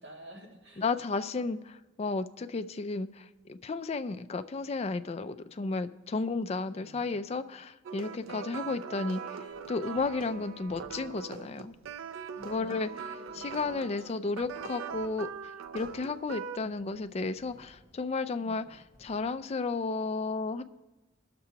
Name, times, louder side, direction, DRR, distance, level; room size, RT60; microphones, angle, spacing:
voice 1, 0.0-0.9 6.6-7.2 8.2-8.9 12.3-14.5 18.3-18.8, equal, 60° right, -1 dB, 1.7 m, -52 dB
voice 2, 0.8-9.4 9.7-11.7 12.4-12.9 13.4-18.6 19.0-20.6, left 3 dB, 30° left, 11 dB, 0.4 m, -33 dB
sound 1, 7.9-16.6, right 6 dB, 85° right, 0.4 m, -41 dB
sound 2, 9.5-19.4, equal, 10° right, 4.2 m, -62 dB
20.5 x 6.8 x 2.8 m, 1.1 s
head